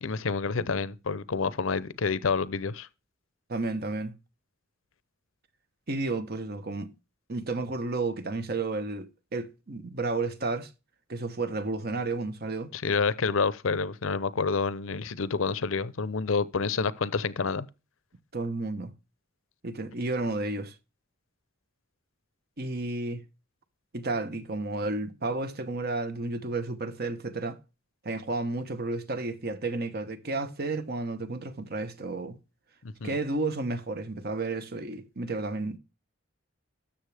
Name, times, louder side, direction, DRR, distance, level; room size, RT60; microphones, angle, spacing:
voice 1, 0.0-2.9 12.7-17.7 33.0-33.2, left 5 dB, 75° left, 0.7 m, -28 dB
voice 2, 3.5-4.1 5.9-6.9 7.3-10.7 11.1-12.7 18.3-18.9 19.6-20.7 22.6-23.2 23.9-27.6 28.0-32.4 33.0-35.8, right 3 dB, 50° right, 1.1 m, -32 dB
13.0 x 7.3 x 3.4 m
head